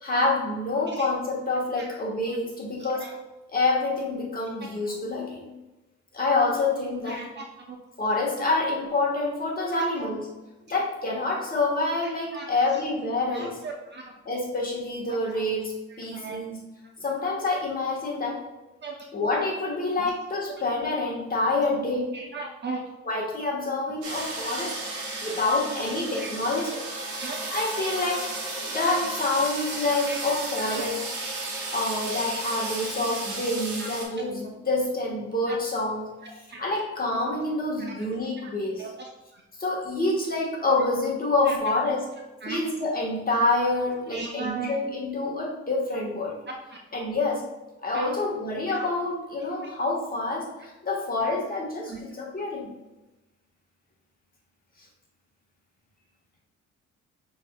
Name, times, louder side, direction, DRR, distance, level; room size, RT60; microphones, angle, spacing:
voice 1, 0.0-3.1 3.5-5.5 6.1-7.2 8.0-10.3 10.7-13.6 14.2-16.6 17.0-18.4 19.1-22.1 23.0-24.7 25.2-26.8 27.5-28.3 28.6-31.0 31.4-36.1 36.6-38.9 39.6-42.1 42.5-46.3 46.9-47.4 47.8-50.5 50.8-52.7, left 2 dB, 30° left, -3 dB, 1.4 m, -27 dB
voice 2, 22.3-22.8 26.2-26.3 27.2-27.4 30.1-30.2 35.5-35.6 38.8-38.9 42.4-42.6 44.1-44.7 47.9-48.1 48.7-48.9 51.9-52.0, right 4 dB, 35° right, 1 dB, 0.5 m, -34 dB
sound 1, 24.0-34.1, right 2 dB, 70° right, 1.4 m, -34 dB
6.2 x 3.4 x 2.3 m, 1.0 s
cardioid pair, 90°, 30 cm